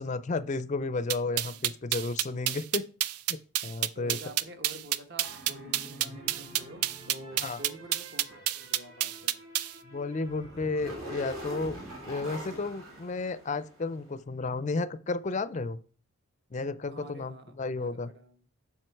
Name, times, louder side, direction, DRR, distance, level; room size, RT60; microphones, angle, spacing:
voice 1, 0.0-2.9 3.3-4.2 7.4-7.6 9.8-11.8 12.1-15.8 16.5-18.1, left 3 dB, 35° left, 0.4 m, -32 dB
sound 1, 1.1-9.7, right 12 dB, 90° right, 0.4 m, -29 dB
voice 2, 3.9-9.4 16.9-17.5 17.8-18.4, right 1 dB, 50° right, 1.1 m, -48 dB
sound 2, 5.2-13.9, right 1 dB, 70° right, 2.7 m, -45 dB
7.7 x 5.6 x 4.5 m
head